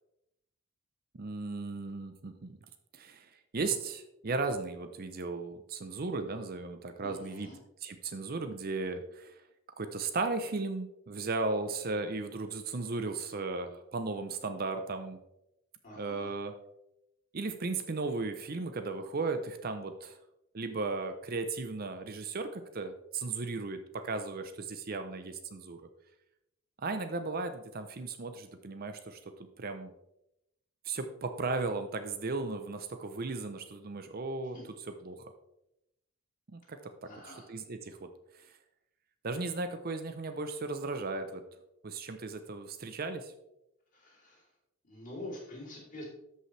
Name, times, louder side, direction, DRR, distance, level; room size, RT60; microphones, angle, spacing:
voice 1, 1.1-2.6 2.9-7.5 7.8-9.4 9.8-15.2 16.0-16.5 17.3-20.2 20.5-25.8 26.8-29.9 30.8-34.6 35.0-35.3 36.5-38.1 38.4-38.5 39.2-41.4 41.8-43.3, right 3 dB, 40° right, 8 dB, 0.6 m, -36 dB
voice 2, 7.0-7.5 15.8-16.3 34.5-34.6 37.0-37.5 43.9-44.5 44.8-46.0, left 1 dB, 35° left, -3 dB, 3.2 m, -46 dB
13.0 x 5.6 x 3.2 m, 0.84 s
head